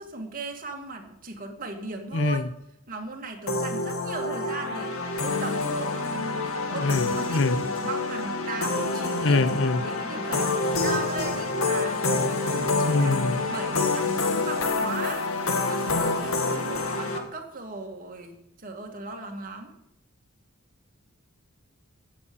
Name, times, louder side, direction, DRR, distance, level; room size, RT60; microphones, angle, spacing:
voice 1, 0.0-2.5 2.9-15.2 15.6-19.7, right 3 dB, 40° right, 2.2 m, -37 dB
voice 2, 2.1-2.5 6.7-7.6 9.2-9.8 12.9-13.4, left 3 dB, 65° left, 0.8 m, -24 dB
sound 1, 3.5-17.2, left 3 dB, 85° left, 1.9 m, -27 dB
16.5 x 7.6 x 7.0 m
head